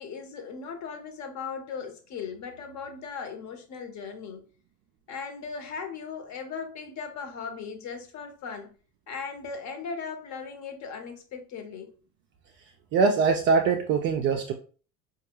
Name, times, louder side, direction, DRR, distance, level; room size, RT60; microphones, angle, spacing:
voice 1, 0.0-4.5 5.1-8.7 9.1-11.9, left 5 dB, 35° left, 0.9 m, -38 dB
voice 2, 12.9-14.5, right 5 dB, 25° right, 0.3 m, -22 dB
5.0 x 2.4 x 2.9 m
figure-of-eight pair, 65°, 47 cm